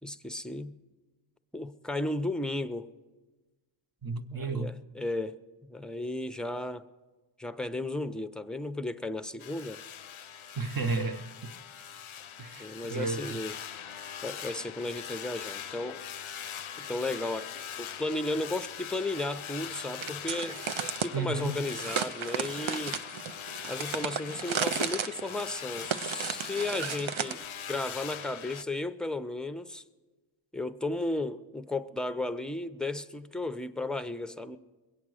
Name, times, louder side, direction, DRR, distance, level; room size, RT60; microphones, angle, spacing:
voice 1, 0.0-0.8 1.5-2.9 4.3-5.4 5.7-6.9 7.4-9.8 12.6-13.5 14.2-16.0 16.9-20.6 21.0-23.0 23.7-27.4 27.7-29.8 30.5-34.6, left 2 dB, ahead, 0.5 m, -34 dB
voice 2, 4.0-4.8 10.5-11.5 12.4-13.4 21.1-21.7, right 3 dB, 45° right, 0.9 m, -33 dB
sound 1, 9.4-28.6, left 8 dB, 85° left, 0.5 m, -41 dB
sound 2, 20.0-21.1 21.7-27.4, right 8 dB, 75° right, 0.6 m, -34 dB
21.5 x 8.6 x 6.3 m
wide cardioid pair, 40°, 47 cm